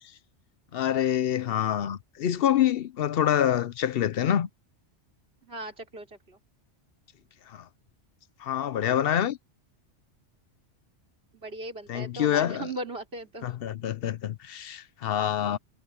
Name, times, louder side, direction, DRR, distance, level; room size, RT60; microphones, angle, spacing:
voice 1, 0.7-4.5 7.5-7.6 8.4-9.4 11.9-12.7 13.4-15.6, left 10 dB, 60° left, 0.8 m, -26 dB
voice 2, 5.4-6.4 11.3-13.5, right 2 dB, 60° right, 4.3 m, -38 dB
omnidirectional pair, 1.2 m